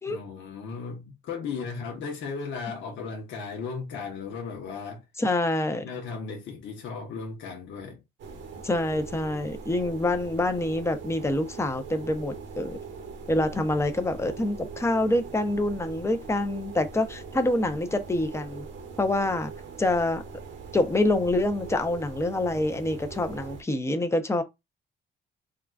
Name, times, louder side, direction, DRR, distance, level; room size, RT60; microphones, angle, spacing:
voice 1, 0.1-5.0 5.8-8.0, left 5 dB, 75° left, 0.9 m, -36 dB
voice 2, 5.2-5.8 8.6-12.8 13.3-18.6 19.0-19.5 19.8-20.2 20.7-24.4, left 1 dB, 15° left, 0.6 m, -26 dB
sound 1, 8.2-23.6, right 5 dB, 75° right, 0.9 m, -41 dB
3.7 x 2.3 x 2.3 m
cardioid pair, 90°, 20 cm